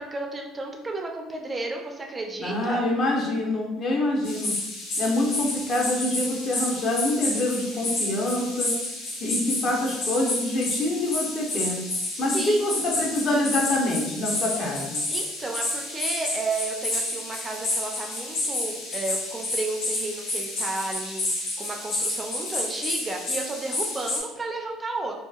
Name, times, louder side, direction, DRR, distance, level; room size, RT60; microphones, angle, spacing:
voice 1, 0.0-2.8 12.1-12.8 15.1-25.2, right 3 dB, 25° right, 2 dB, 0.4 m, -33 dB
voice 2, 2.4-4.5 5.0-8.7 9.2-11.8 12.2-15.0, left 1 dB, 50° left, -2 dB, 0.7 m, -26 dB
sound 1, 4.2-24.2, left 2 dB, 80° left, 1.2 m, -30 dB
2.7 x 2.3 x 2.3 m, 1.0 s
supercardioid pair, 90°, 0 cm